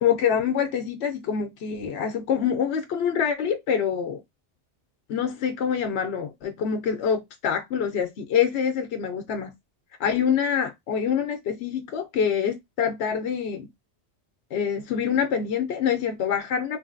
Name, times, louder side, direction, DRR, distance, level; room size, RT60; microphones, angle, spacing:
voice 1, 0.0-4.2 5.1-9.5 10.0-13.7 14.5-16.8, left 7 dB, 70° left, 0.9 m, -25 dB
3.2 x 2.6 x 2.4 m
omnidirectional pair, 1.2 m